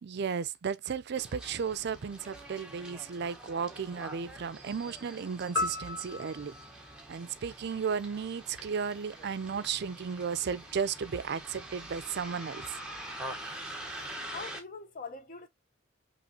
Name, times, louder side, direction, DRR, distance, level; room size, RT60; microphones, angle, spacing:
voice 1, 0.0-6.5 7.1-12.8, right 6 dB, 55° right, 0.4 m, -34 dB
Bus, 1.2-14.6, right 1 dB, 5° right, 1.0 m, -45 dB
sound 1, 5.6-8.0, left 3 dB, 75° left, 1.1 m, -36 dB
voice 2, 14.3-15.5, left 4 dB, 45° left, 0.8 m, -42 dB
5.5 x 3.0 x 2.7 m
head